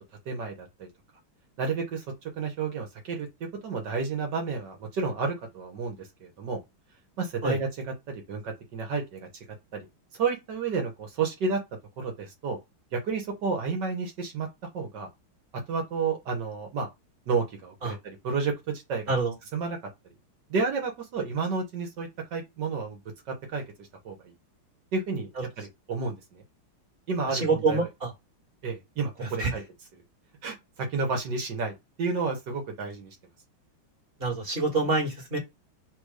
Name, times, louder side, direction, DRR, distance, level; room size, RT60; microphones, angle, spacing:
voice 1, 0.3-0.9 1.6-6.6 7.2-9.3 9.7-9.9 10.1-11.6 12.0-12.6 12.9-14.5 14.7-15.1 15.5-16.9 17.3-19.0 19.5-19.8 20.5-23.0 23.3-24.3 24.9-25.3 25.6-26.4 27.1-27.9 28.6-29.6 30.4-33.2, right 4 dB, 60° right, 1.6 m, -31 dB
voice 2, 27.3-28.1 29.2-29.5 34.2-35.4, right 3 dB, 30° right, 1.6 m, -26 dB
4.0 x 2.6 x 4.7 m
omnidirectional pair, 2.3 m